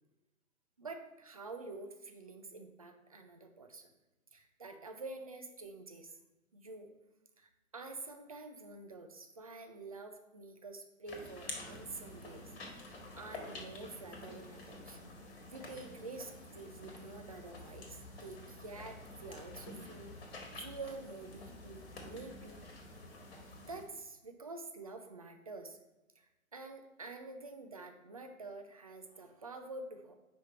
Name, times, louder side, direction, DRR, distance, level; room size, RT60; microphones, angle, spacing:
voice 1, 0.8-3.9 4.3-6.2 6.5-6.9 7.4-12.5 12.9-15.0 15.5-20.2 20.6-22.6 23.7-25.8 26.2-30.2, right 3 dB, 30° right, 6 dB, 0.4 m, -48 dB
sound 1, 11.1-23.8, left 2 dB, 40° left, 1.5 m, -49 dB
5.1 x 4.5 x 5.5 m, 1.0 s
figure-of-eight pair, 135°, 41 cm